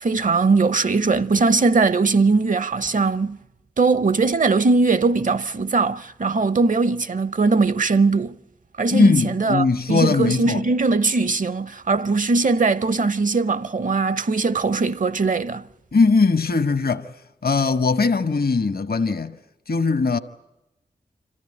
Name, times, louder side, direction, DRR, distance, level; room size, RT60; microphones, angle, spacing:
voice 1, 0.0-3.4 3.8-8.3 8.8-15.6, right 3 dB, 50° right, 0.7 m, -20 dB
voice 2, 8.9-10.6 15.9-17.1 17.4-19.4 19.7-20.2, left 4 dB, 60° left, 1.1 m, -20 dB
26.0 x 14.5 x 9.9 m
cardioid pair, 45°, 18 cm